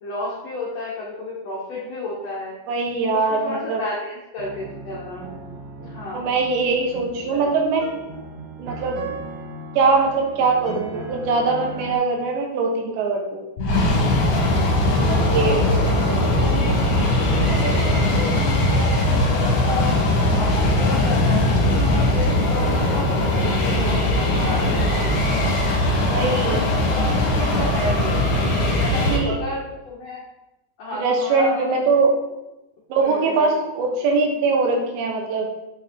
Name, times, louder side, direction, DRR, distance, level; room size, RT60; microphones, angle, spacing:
voice 1, 0.0-2.6 3.1-5.3 5.8-6.3 7.3-7.5 14.9-16.7 17.3-20.0 20.3-25.4 25.9-28.2 28.8-30.2 30.8-31.8 33.0-33.5, left 2 dB, 75° left, -6 dB, 1.5 m, -32 dB
voice 2, 2.7-3.8 6.1-7.9 8.6-9.0 9.8-13.4 15.1-15.9 24.3-24.7 26.1-26.7 28.9-29.4 31.0-32.2 32.9-35.5, right 4 dB, 90° right, 1 dB, 3.5 m, -22 dB
sound 1, 4.4-12.0, right 2 dB, 70° right, 2.4 m, -37 dB
sound 2, 13.6-29.2, left 1 dB, 55° left, 2.3 m, -20 dB
9.2 x 5.6 x 3.7 m, 0.96 s
omnidirectional pair, 4.9 m